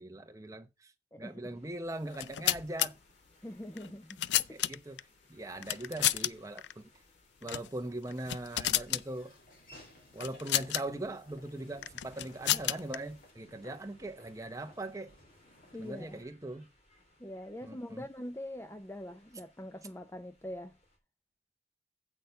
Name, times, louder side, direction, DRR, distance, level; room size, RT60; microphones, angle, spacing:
voice 1, 0.0-0.9 1.2-3.0 4.5-5.0 5.3-6.9 7.4-9.3 10.1-15.1 15.8-16.7 17.6-18.0, right 1 dB, 20° right, 0.8 m, -40 dB
voice 2, 1.1-1.6 3.4-4.6 15.7-16.2 17.2-20.8, left 1 dB, 15° left, 0.5 m, -43 dB
sound 1, 1.5-21.0, left 1 dB, 35° left, 3.4 m, -65 dB
sound 2, 2.1-2.9 3.8-5.0 5.6-6.3 6.6-6.7 7.4-7.7 8.1-9.0 10.2-10.8 11.8-13.0, left 13 dB, 85° left, 0.4 m, -31 dB
Laughter / Walk footsteps, 8.7-16.2, equal, 55° left, 3.3 m, -59 dB
8.0 x 6.3 x 5.5 m
head